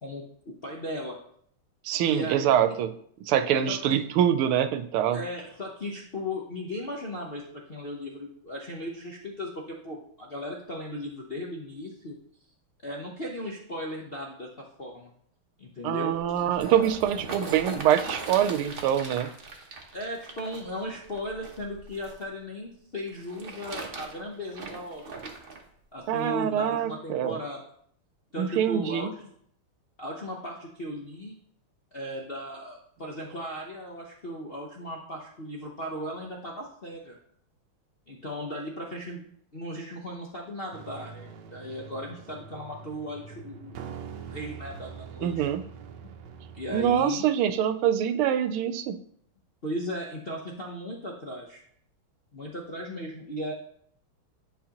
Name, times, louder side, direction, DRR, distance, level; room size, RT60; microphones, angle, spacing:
voice 1, 0.0-1.2 2.1-2.5 3.7-4.0 5.1-12.2 12.8-15.1 15.6-16.5 19.9-25.2 25.9-27.6 28.3-29.3 30.0-31.4 31.9-37.2 38.1-39.3 39.5-45.5 46.5-47.3 49.6-51.6 52.3-53.5, left 1 dB, 55° left, -1 dB, 0.6 m, -37 dB
voice 2, 1.8-2.9 3.3-5.2 15.8-19.3 26.1-27.4 28.4-29.1 45.2-45.6 46.7-49.0, right 10 dB, 90° right, 11 dB, 1.5 m, -25 dB
sound 1, 16.1-22.2 23.1-25.6 26.3-26.4, right 4 dB, 45° right, 0.7 m, -40 dB
sound 2, 40.7-47.0, right 6 dB, 65° right, 1.2 m, -44 dB
10.0 x 5.4 x 2.9 m, 0.65 s
omnidirectional pair, 2.3 m